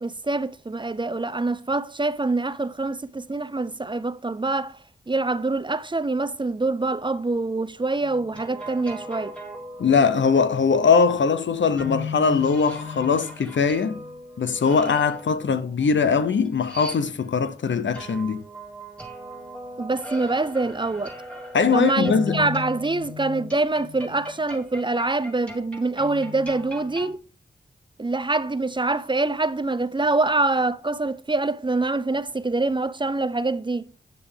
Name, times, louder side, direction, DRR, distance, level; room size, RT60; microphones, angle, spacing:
voice 1, 0.0-4.8 5.1-9.3 19.8-21.2 21.7-27.2 28.0-33.9, right 3 dB, 25° right, 0.6 m, -25 dB
sound 1, 8.0-10.6 11.8-17.5 17.9-27.1, left 2 dB, 5° left, 3.5 m, -37 dB
voice 2, 9.8-14.0 14.4-18.4 21.5-22.4, left 5 dB, 75° left, 0.8 m, -21 dB
9.2 x 6.9 x 3.4 m
cardioid pair, 50°, 20 cm